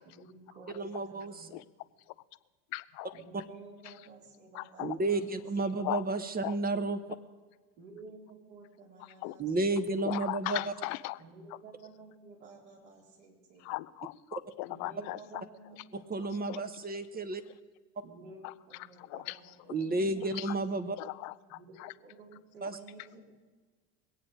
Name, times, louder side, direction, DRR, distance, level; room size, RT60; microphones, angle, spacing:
voice 1, 0.1-1.5 3.1-5.3 5.6-5.7 7.8-10.1 11.2-13.7 14.7-16.5 18.0-20.6 21.5-23.2, right 3 dB, 60° right, -1 dB, 3.7 m, -53 dB
voice 2, 0.8-1.5 4.8-7.0 9.4-10.7 15.9-17.4 19.7-21.0 22.6-22.8, right 2 dB, 20° right, 10 dB, 0.9 m, -32 dB
voice 3, 2.7-3.1 4.5-4.9 5.8-6.0 6.4-6.5 9.2-9.3 10.0-11.2 13.6-15.2 16.5-16.6 18.4-18.5 19.3-19.4 20.3-20.5 21.0-21.9, left 20 dB, 40° left, 17 dB, 0.4 m, -37 dB
21.5 x 8.8 x 5.2 m, 1.4 s
figure-of-eight pair, 75°, 49 cm